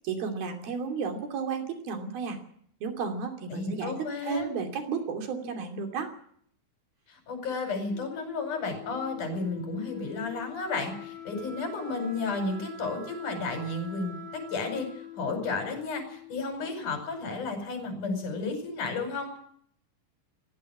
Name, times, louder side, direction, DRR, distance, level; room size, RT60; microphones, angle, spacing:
voice 1, 0.0-2.4 2.8-6.1, right 5 dB, 55° right, 5 dB, 4.4 m, -33 dB
voice 2, 3.5-4.5 7.1-14.9 15.1-19.4, left 3 dB, 45° left, 4 dB, 6.6 m, -33 dB
Wind instrument woodwind instrument, 7.9-16.6, left 6 dB, 15° right, 5.0 m, -44 dB
18.0 x 17.0 x 8.5 m, 0.64 s
omnidirectional pair, 5.3 m